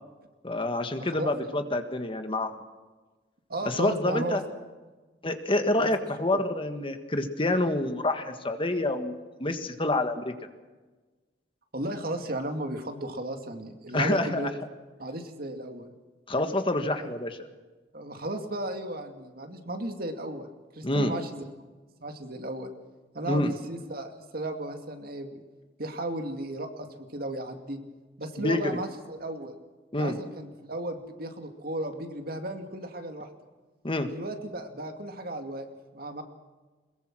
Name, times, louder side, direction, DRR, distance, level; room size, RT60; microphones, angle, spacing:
voice 1, 0.4-2.5 3.6-4.4 5.2-10.3 13.9-14.5 16.3-17.4 20.8-21.1 23.3-23.5 28.4-28.7 29.9-30.2 33.8-34.1, left 2 dB, 30° left, 7 dB, 1.6 m, -27 dB
voice 2, 3.5-4.4 5.8-5.9 6.3-6.4 11.7-14.5 15.0-15.9 17.0-17.1 17.9-20.5 20.7-21.4 22.0-22.7 23.1-25.4 25.8-27.8 28.2-29.6 30.0-33.3 34.1-35.7 35.9-36.2, right 1 dB, 55° right, 5 dB, 2.5 m, -35 dB
22.0 x 21.5 x 6.2 m, 1.3 s
head